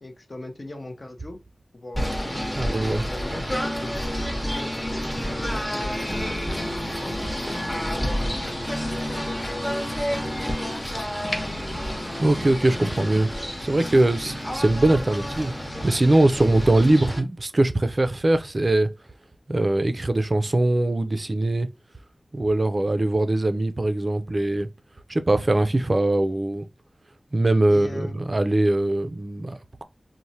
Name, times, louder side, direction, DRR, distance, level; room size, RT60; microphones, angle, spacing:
voice 1, 0.0-1.4 1.7-3.4 3.8-11.3 27.7-28.2, left 2 dB, 45° left, 0.6 m, -40 dB
Singing / Bird, 1.9-17.2, equal, 10° left, 0.7 m, -29 dB
voice 2, 2.6-3.1 12.2-13.3 13.6-15.5 15.8-18.9 19.5-21.7 22.3-24.7 25.1-26.7 27.3-29.8, right 2 dB, 40° right, 0.3 m, -21 dB
3.0 x 2.0 x 2.7 m
wide cardioid pair, 60°, 0 cm